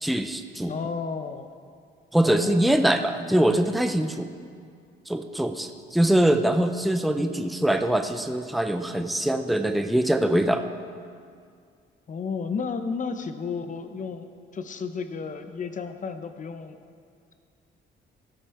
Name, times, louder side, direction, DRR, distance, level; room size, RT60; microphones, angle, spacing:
voice 1, 0.0-0.7 2.1-4.3 5.1-10.6, right 1 dB, ahead, 7 dB, 0.5 m, -23 dB
voice 2, 0.7-1.5 2.2-2.9 12.1-16.8, left 5 dB, 40° left, 9 dB, 0.7 m, -33 dB
15.5 x 5.5 x 4.2 m, 2.2 s
cardioid pair, 90°, 20 cm